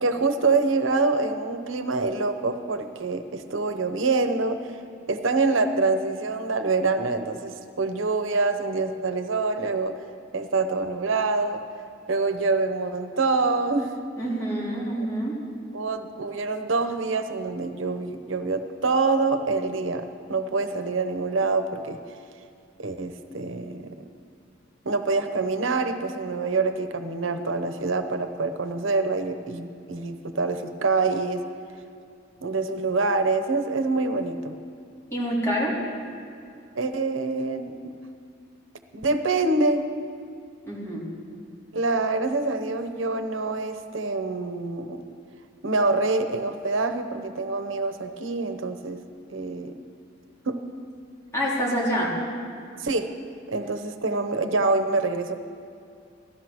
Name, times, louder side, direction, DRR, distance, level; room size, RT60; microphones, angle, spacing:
voice 1, 0.0-4.6 5.1-10.0 10.3-11.6 12.1-13.9 15.7-22.0 22.8-24.1 24.8-31.4 32.4-34.5 36.7-38.0 38.9-39.8 41.7-45.0 45.6-49.0 49.3-49.8 50.4-50.6 52.8-53.1 53.5-55.3, right 3 dB, 90° right, 8 dB, 0.9 m, -26 dB
voice 2, 14.2-15.4 35.1-35.8 40.7-41.1 51.3-52.1, equal, 15° left, -7 dB, 3.7 m, -26 dB
16.0 x 13.0 x 6.2 m, 2.5 s
head